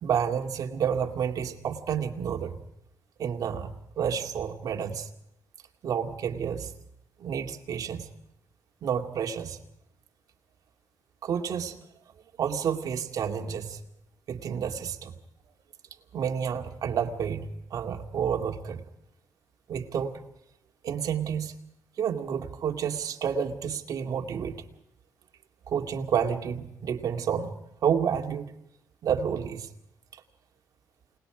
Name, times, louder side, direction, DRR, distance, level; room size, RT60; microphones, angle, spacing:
voice 1, 0.0-2.6 3.2-3.7 4.0-5.1 5.8-6.7 7.2-8.1 8.8-9.6 11.2-11.8 12.4-13.8 14.3-15.1 16.1-18.8 19.7-20.2 20.8-21.5 22.0-24.6 25.7-27.5 27.8-28.5 29.0-29.7 30.1-30.2, right 7 dB, 70° right, 4 dB, 2.3 m, -30 dB
29.0 x 19.5 x 5.0 m, 0.80 s
cardioid pair, 115°, 6 cm